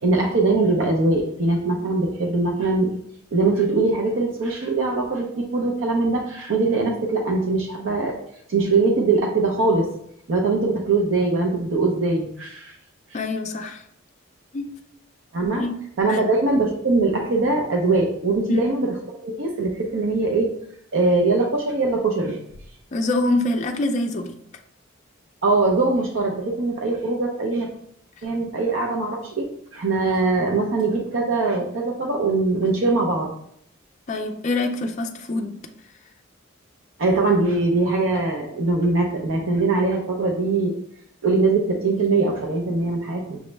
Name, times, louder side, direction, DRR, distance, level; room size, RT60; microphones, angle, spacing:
voice 1, 0.0-2.9 3.3-8.2 8.5-9.9 10.3-12.8 13.1-13.2 15.3-15.6 16.0-19.0 19.2-20.5 20.9-22.4 25.4-27.7 28.2-33.3 37.0-40.7 41.2-43.4, right 3 dB, 70° right, 0 dB, 0.5 m, -22 dB
voice 2, 13.1-13.8 14.5-14.6 15.6-15.7 16.1-16.2 18.5-18.6 22.9-24.3 34.1-35.6, left 2 dB, 35° left, 4 dB, 0.4 m, -24 dB
6.0 x 2.0 x 3.2 m, 0.67 s
head